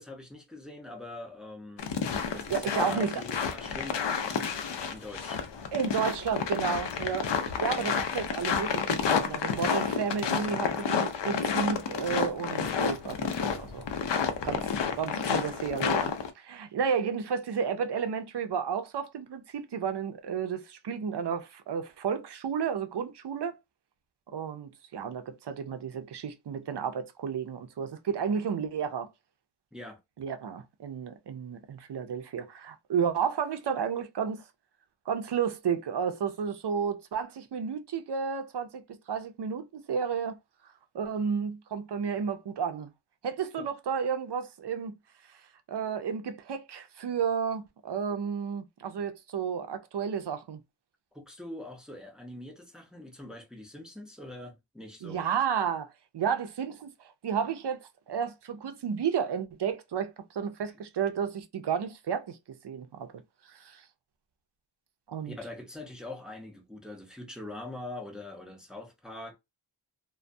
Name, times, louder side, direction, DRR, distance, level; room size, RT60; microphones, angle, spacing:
voice 1, 0.0-1.9 2.3-4.4 4.9-5.4 29.7-30.0 43.6-43.7 51.1-55.3 65.2-69.3, left 2 dB, ahead, 0.5 m, -43 dB
sound 1, 1.8-16.3, left 6 dB, 65° left, 0.5 m, -30 dB
voice 2, 2.3-3.1 5.7-13.8 14.4-23.6 24.3-29.1 30.2-34.4 35.1-38.8 39.1-40.4 40.9-42.9 43.2-44.9 45.7-50.6 55.0-55.9 56.1-57.8 58.1-62.4 62.6-63.1 63.5-63.8 65.1-65.4, right 7 dB, 60° right, 0.5 m, -32 dB
2.2 x 2.2 x 2.5 m
wide cardioid pair, 80°, 47 cm